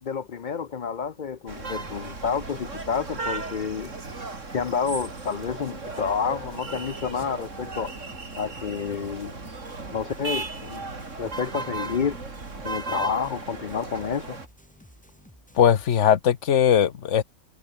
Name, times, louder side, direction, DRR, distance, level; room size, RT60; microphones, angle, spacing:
voice 1, 0.0-3.9 4.5-7.9 8.4-9.4 9.9-10.8 11.2-12.2 12.6-14.4, left 6 dB, 45° left, 0.7 m, -29 dB
sound 1, 1.5-14.5, right 3 dB, 90° right, 3.6 m, -36 dB
sound 2, 1.8-16.1, equal, 5° left, 5.4 m, -53 dB
voice 2, 15.6-17.2, left 9 dB, 75° left, 1.4 m, -19 dB
omnidirectional pair, 1.3 m